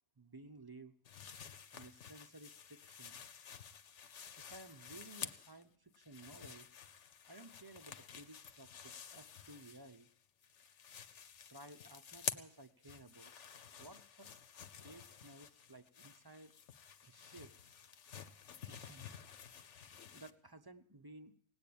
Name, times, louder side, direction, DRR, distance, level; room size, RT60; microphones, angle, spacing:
voice 1, 0.2-1.0 1.7-3.2 4.4-6.7 7.3-10.1 11.5-13.3 13.8-14.3 14.8-16.6 17.0-17.5 18.7-19.1 20.1-21.3, right 2 dB, 20° right, 8 dB, 0.7 m, -56 dB
sound 1, 1.0-5.6 5.9-10.1 10.4-20.3, left 7 dB, 70° left, 1.2 m, -50 dB
18.5 x 8.9 x 8.6 m, 0.65 s
omnidirectional pair, 1.3 m